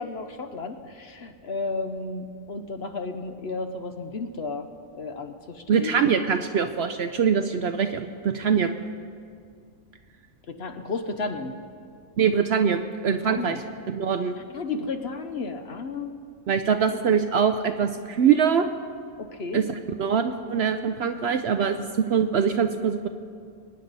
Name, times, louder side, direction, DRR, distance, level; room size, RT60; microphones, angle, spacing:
voice 1, 0.0-4.7 4.9-6.1 10.5-11.5 13.1-13.6 14.4-16.2 19.2-19.7 21.6-21.8, left 3 dB, 55° left, 7 dB, 0.9 m, -33 dB
voice 2, 5.7-8.7 12.2-13.6 13.9-14.4 16.5-18.7 19.5-23.1, right 7 dB, 65° right, 8 dB, 0.7 m, -23 dB
22.5 x 9.9 x 4.0 m, 2.3 s
omnidirectional pair, 1.4 m